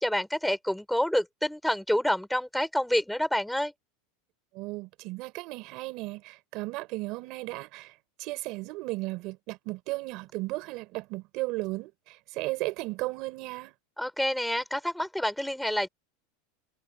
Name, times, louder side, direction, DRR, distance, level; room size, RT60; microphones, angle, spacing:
voice 1, 0.0-3.7 14.0-15.9, equal, ahead, 5.2 m, -28 dB
voice 2, 4.5-13.7, right 21 dB, 50° right, 4.5 m, -35 dB
supercardioid pair, 145°, 0 cm